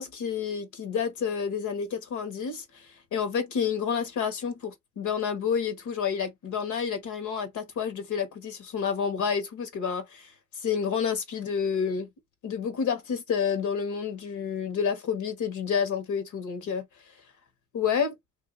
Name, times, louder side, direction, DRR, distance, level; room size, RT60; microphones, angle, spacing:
voice 1, 0.0-2.9 3.1-10.3 10.6-12.1 12.4-16.9 17.7-18.2, left 6 dB, 75° left, 1.3 m, -29 dB
2.7 x 2.7 x 3.8 m
cardioid pair, 90°, 30 cm